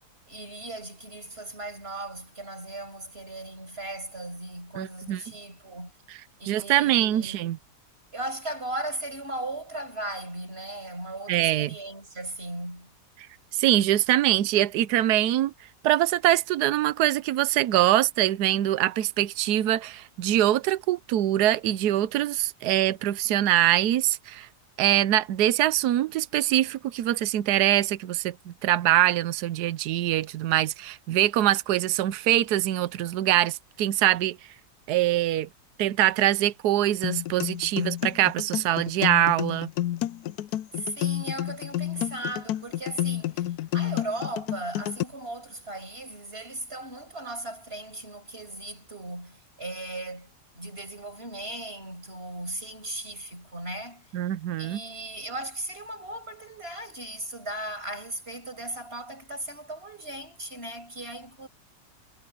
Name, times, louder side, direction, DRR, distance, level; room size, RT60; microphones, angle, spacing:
voice 1, 0.3-5.9 6.4-7.4 8.1-12.9 40.7-54.1 54.6-61.5, right 1 dB, 35° right, 6.6 m, -37 dB
voice 2, 4.8-5.2 6.4-7.6 11.3-11.7 13.5-15.5 15.8-24.5 24.8-34.4 34.9-35.5 35.8-39.7 54.1-54.8, right 13 dB, 80° right, 1.2 m, -23 dB
sound 1, 37.0-45.0, left 13 dB, 75° left, 1.1 m, -30 dB
omnidirectional pair, 1.7 m